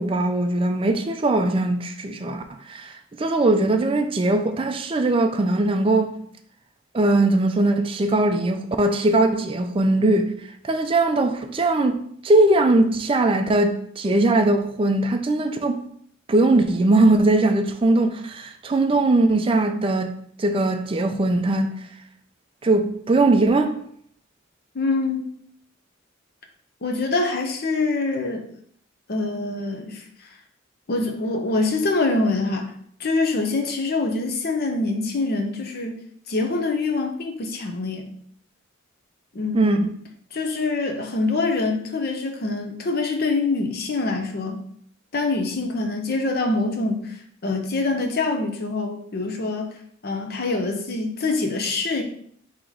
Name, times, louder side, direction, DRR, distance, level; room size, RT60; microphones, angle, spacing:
voice 1, 0.0-6.1 6.9-10.3 10.6-15.8 16.3-20.1 20.4-21.8 22.6-23.8 39.5-39.8, right 2 dB, 25° right, 0.4 m, -20 dB
voice 2, 24.7-25.2 26.8-28.4 29.1-30.0 30.9-32.7 33.0-36.0 36.3-38.1 39.3-39.9 40.3-44.6 45.1-47.2 47.4-49.7 50.0-52.0, left 3 dB, 50° left, 0.7 m, -25 dB
3.9 x 2.9 x 4.6 m
head